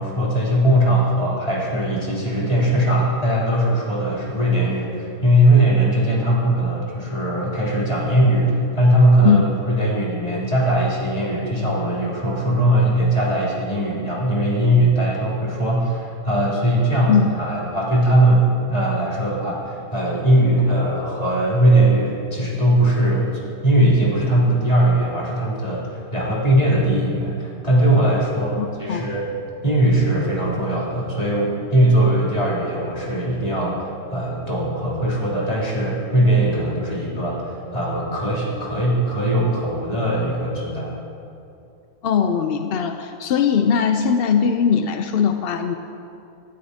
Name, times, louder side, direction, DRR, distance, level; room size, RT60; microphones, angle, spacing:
voice 1, 0.0-29.2 29.6-40.9, right 1 dB, 25° left, -7 dB, 3.2 m, -20 dB
voice 2, 28.6-29.0 42.0-45.7, left 7 dB, 65° left, 6 dB, 0.5 m, -19 dB
19.5 x 12.5 x 2.8 m, 2.6 s
omnidirectional pair, 1.6 m